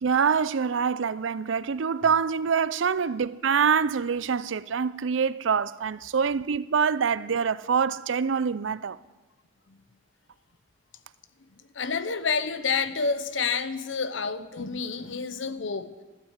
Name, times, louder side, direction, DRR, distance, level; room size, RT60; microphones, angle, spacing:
voice 1, 0.0-9.0, right 6 dB, 80° right, 0.5 m, -25 dB
voice 2, 11.7-15.9, left 5 dB, 80° left, 0.8 m, -29 dB
12.5 x 12.0 x 8.1 m
head